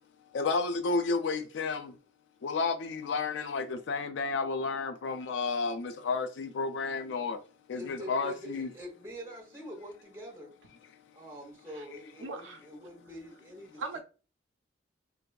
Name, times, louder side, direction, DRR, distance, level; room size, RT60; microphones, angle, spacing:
voice 1, 0.3-2.0 2.4-7.4 7.7-8.7, left 4 dB, 85° left, 0.4 m, -31 dB
voice 2, 7.7-10.5 11.1-13.8, equal, 15° right, 0.6 m, -45 dB
voice 3, 12.2-12.6 13.8-14.0, right 4 dB, 90° right, 0.4 m, -38 dB
2.6 x 2.3 x 2.2 m
head